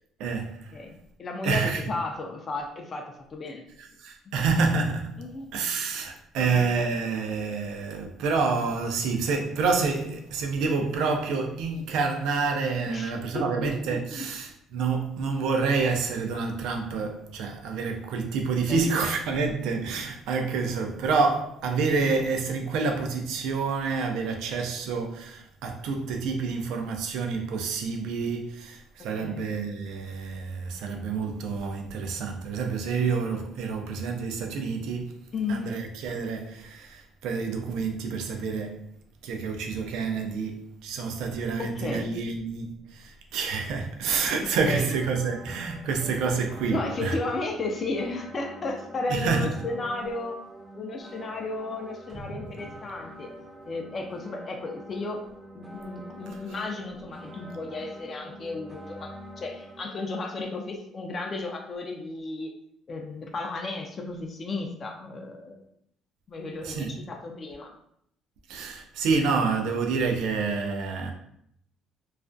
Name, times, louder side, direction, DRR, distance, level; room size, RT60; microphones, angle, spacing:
voice 1, 0.2-0.8 1.4-1.8 3.8-5.2 5.5-38.8 39.2-47.2 49.1-49.5 66.6-67.0 68.5-71.1, right 4 dB, 80° right, 0.4 m, -28 dB
voice 2, 0.7-3.6 5.2-5.5 6.4-6.7 12.9-14.0 18.7-18.9 29.2-29.4 35.3-35.7 41.6-42.1 44.6-44.9 46.7-50.4 50.7-53.3 53.7-55.2 55.5-62.5 62.9-65.6 66.3-67.7, left 3 dB, 40° left, 0.4 m, -34 dB
sound 1, 44.8-59.8, equal, 10° right, 0.5 m, -45 dB
sound 2, 52.1-54.6, right 2 dB, 40° right, 0.8 m, -46 dB
2.3 x 2.1 x 2.5 m
cardioid pair, 95°, 0 cm